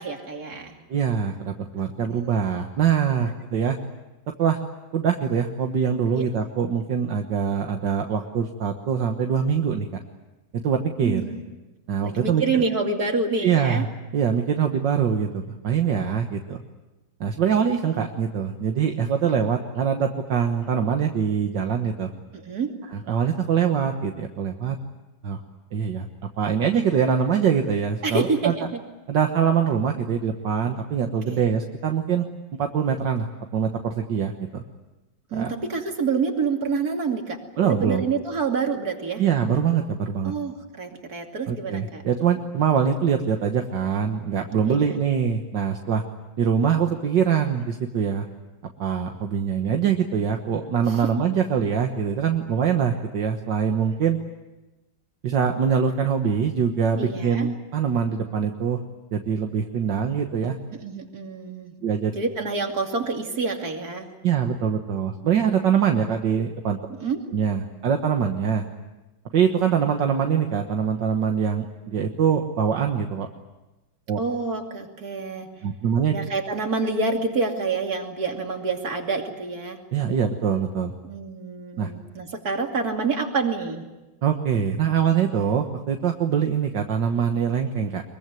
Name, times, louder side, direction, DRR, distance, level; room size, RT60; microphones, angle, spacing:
voice 1, 0.0-0.8 2.2-2.4 3.2-3.3 6.1-6.2 11.0-11.4 12.0-13.9 22.3-22.7 28.0-28.7 31.3-31.4 35.3-39.2 40.2-42.0 44.6-45.0 57.0-57.5 60.8-61.7 62.1-64.1 67.0-67.2 74.2-75.5 76.1-79.8 81.0-83.8, right 4 dB, 55° right, 3 dB, 3.2 m, -27 dB
voice 2, 0.9-3.8 4.4-4.6 4.9-9.9 10.5-11.2 11.9-12.6 13.4-13.9 14.1-16.6 17.2-22.1 22.9-24.8 25.2-25.4 25.7-26.1 26.4-28.5 29.1-32.2 32.6-33.3 33.5-34.6 35.3-35.5 37.6-38.0 39.2-40.3 41.5-46.0 46.4-48.3 48.8-54.2 55.2-58.8 59.1-60.6 61.8-62.1 64.2-66.8 67.3-68.6 69.3-73.3 74.1-74.2 75.6-76.1 79.9-80.9 81.8-81.9 84.2-88.0, right 7 dB, 70° right, 4 dB, 2.0 m, -23 dB
23.5 x 23.0 x 9.2 m, 1.1 s
omnidirectional pair, 2.0 m